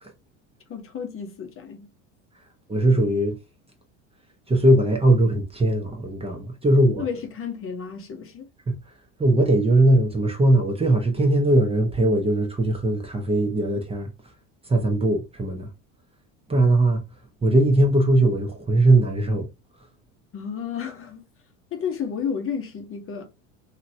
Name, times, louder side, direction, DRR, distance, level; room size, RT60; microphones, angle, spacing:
voice 1, 0.7-1.9 7.0-8.5 20.3-21.2 21.7-23.2, left 7 dB, 35° left, 0.9 m, -32 dB
voice 2, 2.7-3.4 4.5-7.0 8.7-8.8 9.2-14.1 14.7-15.7 16.5-17.0 17.4-19.5, right 1 dB, 15° right, 0.8 m, -20 dB
3.0 x 2.9 x 2.6 m
hypercardioid pair, 90°, 40 cm